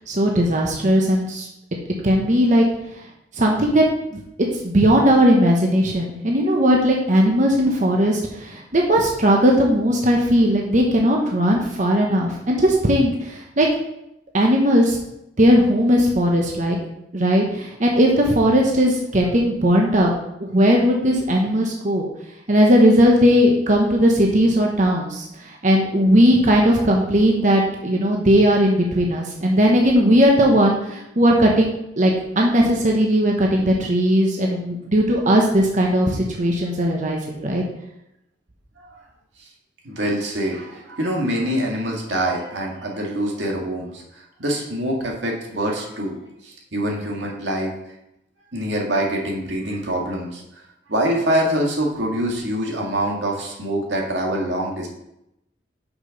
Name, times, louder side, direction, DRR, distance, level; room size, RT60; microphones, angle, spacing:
voice 1, 0.1-1.5 2.0-2.6 3.4-3.9 4.5-13.7 14.3-15.0 15.4-16.8 17.1-20.1 20.4-22.1 22.5-25.3 25.6-31.7 32.0-37.6, equal, 45° right, -1 dB, 1.0 m, -18 dB
voice 2, 39.9-46.1 46.4-47.7 48.5-50.4 50.9-54.9, right 1 dB, 85° right, -1 dB, 1.9 m, -25 dB
6.0 x 6.0 x 5.2 m, 0.84 s
head